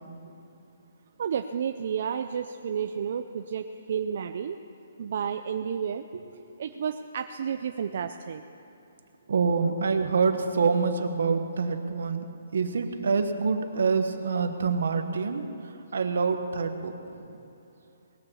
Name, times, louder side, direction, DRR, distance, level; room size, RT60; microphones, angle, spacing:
voice 1, 1.2-4.6 5.0-6.1 6.6-8.4, right 7 dB, 40° right, 7 dB, 0.4 m, -31 dB
voice 2, 9.3-12.3 12.5-15.5 15.9-17.2, right 5 dB, 65° right, 7 dB, 1.1 m, -26 dB
19.5 x 6.9 x 7.1 m, 2.9 s
hypercardioid pair, 180°, 0 cm